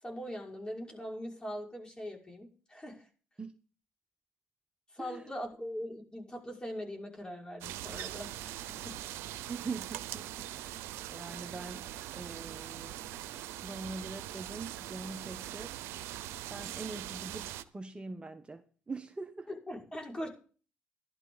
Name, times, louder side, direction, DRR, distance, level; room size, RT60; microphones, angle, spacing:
voice 1, 0.0-3.1 4.9-9.0 19.5-20.3, equal, 20° left, -1 dB, 6.0 m, -41 dB
sound 1, 7.6-17.6, right 13 dB, 85° right, 0.7 m, -42 dB
voice 2, 9.4-10.8 11.1-13.0 13.6-15.8 16.5-19.5, right 3 dB, 25° right, 7 dB, 1.1 m, -43 dB
14.0 x 11.5 x 4.1 m, 0.39 s
supercardioid pair, 65°, 4 cm